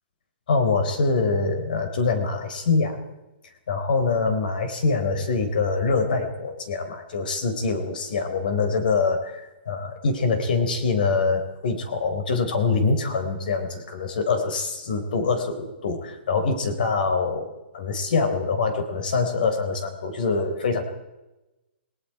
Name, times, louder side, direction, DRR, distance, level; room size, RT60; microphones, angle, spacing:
voice 1, 0.5-3.0 3.7-20.8, left 4 dB, 50° left, 8 dB, 3.8 m, -24 dB
29.0 x 19.5 x 4.8 m, 1.0 s
hypercardioid pair, 175°, 6 cm